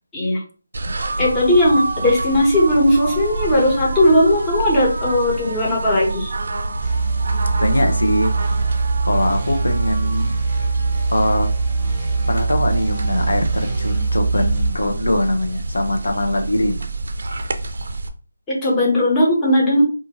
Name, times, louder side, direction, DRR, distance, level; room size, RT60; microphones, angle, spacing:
sound 1, 0.7-18.1, right 2 dB, 60° right, 0.4 m, -27 dB
voice 1, 1.2-6.3 18.5-19.8, left 1 dB, 10° left, -5 dB, 0.8 m, -17 dB
sound 2, 6.8-14.7, right 4 dB, 15° right, 0.9 m, -22 dB
voice 2, 7.6-8.3 9.0-10.3 11.1-11.5 12.3-16.9, left 1 dB, 80° left, 4 dB, 0.5 m, -22 dB
2.4 x 2.4 x 2.9 m, 0.37 s
figure-of-eight pair, 165°, 0 cm